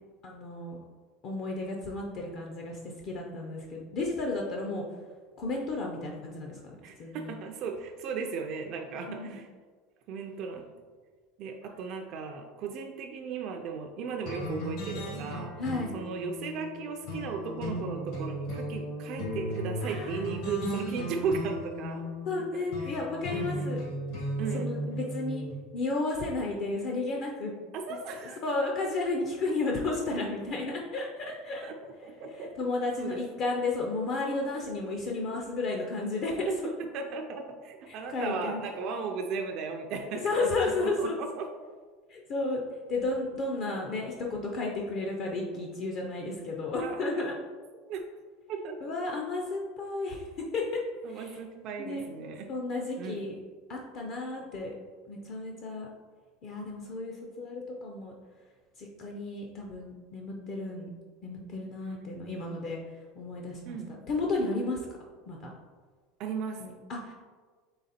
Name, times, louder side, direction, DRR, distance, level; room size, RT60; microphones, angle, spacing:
voice 1, 0.2-0.8 1.2-4.9 5.4-7.3 8.9-9.4 15.6-15.9 19.8-20.5 22.2-23.8 24.2-25.4 25.7-27.5 27.9-28.0 28.4-31.7 32.0-36.7 37.9-38.6 40.2-41.2 42.1-42.6 42.9-47.3 48.8-50.8 51.1-51.4 51.8-52.0 52.5-53.3 53.7-54.7 55.1-55.9 56.4-58.1 58.8-60.9 61.2-63.8 64.1-64.9 65.3-65.5 66.6-67.1, left 3 dB, 40° left, 0 dB, 0.5 m, -33 dB
voice 2, 6.8-9.5 10.1-10.7 11.4-15.5 15.9-22.0 22.8-22.9 23.3-23.7 24.4-24.8 27.7-28.4 31.6-31.8 32.0-32.5 33.0-33.2 36.8-40.5 41.0-41.5 46.8-47.3 47.9-48.0 48.5-48.9 51.0-52.5 53.0-53.2 61.9-62.1 63.7-63.9 66.2-66.6, right 5 dB, 45° right, 3 dB, 0.4 m, -36 dB
sound 1, 14.3-25.5, equal, 65° left, 1.4 m, -36 dB
3.9 x 3.3 x 4.1 m, 1.5 s
supercardioid pair, 160°, 0 cm